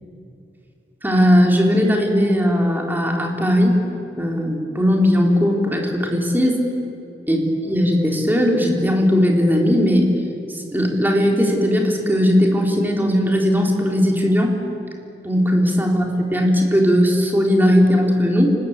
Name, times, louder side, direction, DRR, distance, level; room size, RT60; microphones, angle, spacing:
voice 1, 1.0-3.8 4.2-6.6 7.3-10.1 10.7-14.5 15.2-18.5, equal, 10° right, 0 dB, 3.7 m, -18 dB
29.5 x 19.5 x 8.8 m, 2.6 s
head